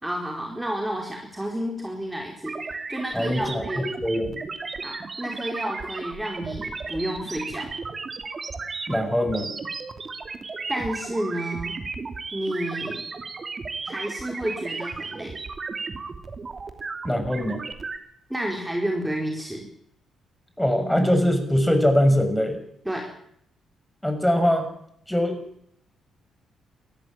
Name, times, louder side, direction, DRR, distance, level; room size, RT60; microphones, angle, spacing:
voice 1, 0.0-2.6 2.9-3.9 4.8-7.7 10.7-11.8 12.3-13.0 13.8-15.4 18.3-19.7 22.8-23.1, right 1 dB, 10° right, 0 dB, 4.7 m, -30 dB
sound 1, 2.4-18.0, right 4 dB, 40° right, 2.8 m, -34 dB
voice 2, 3.1-4.4 8.9-9.5 17.0-17.6 20.6-22.6 24.0-24.7 25.1-25.5, equal, 5° left, 7 dB, 6.1 m, -22 dB
22.0 x 14.5 x 8.9 m, 0.71 s
hypercardioid pair, 45°, 0 cm